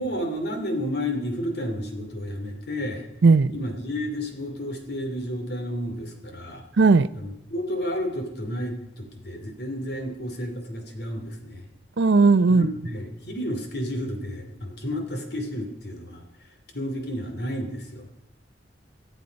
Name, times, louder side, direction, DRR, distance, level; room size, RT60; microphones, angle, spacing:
voice 1, 0.0-3.1 3.5-6.6 7.1-11.7 12.5-16.2 16.7-18.1, equal, 65° left, 2.6 m, -31 dB
voice 2, 6.8-7.1 12.0-12.7, right 4 dB, 70° right, 0.5 m, -16 dB
23.5 x 8.2 x 5.2 m
head